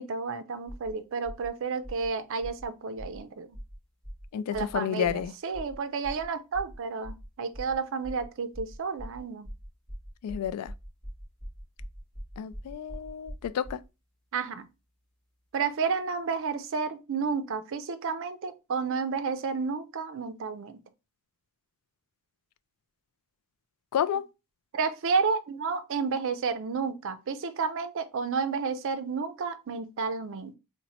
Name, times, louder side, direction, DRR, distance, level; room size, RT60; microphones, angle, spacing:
voice 1, 0.0-3.6 4.5-9.5 14.3-14.7 15.5-20.8 24.7-30.6, right 5 dB, 60° right, 0.4 m, -31 dB
sound 1, 0.7-0.9 1.2-1.5 1.8-2.1 2.4-2.7 3.0-3.2 3.5-3.8 4.0-4.3 4.5-4.8 5.0-5.3 5.5-5.8 6.0-6.3 6.5-6.8 7.0-7.3 7.5-7.8 8.0-8.3 8.5-13.9, equal, ahead, 1.4 m, -42 dB
voice 2, 4.3-5.3 10.2-10.7 12.4-13.8 23.9-24.3, left 9 dB, 90° left, 0.3 m, -30 dB
2.9 x 2.1 x 4.1 m
head